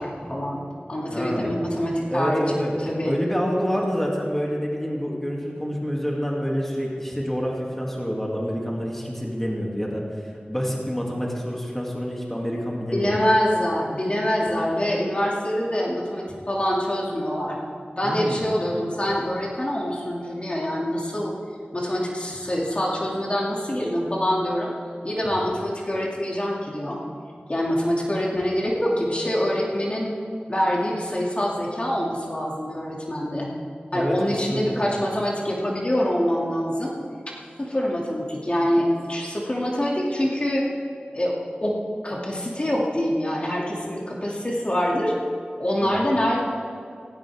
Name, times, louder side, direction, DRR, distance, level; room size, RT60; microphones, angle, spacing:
voice 1, 0.0-3.1 12.9-17.6 18.0-21.3 21.7-24.7 25.0-27.0 27.5-30.1 30.5-33.5 33.9-36.9 37.6-40.6 41.1-41.3 41.6-41.7 42.0-45.1 45.6-46.4, equal, 35° left, -3 dB, 2.5 m, -25 dB
voice 2, 1.1-1.6 2.1-2.7 3.0-10.0 10.5-13.2 18.0-18.4 25.2-25.3 33.9-34.2 34.5-34.8 45.8-46.0, equal, 10° left, -3 dB, 2.6 m, -27 dB
17.0 x 17.0 x 3.6 m, 2.4 s
wide cardioid pair, 70°, 3 cm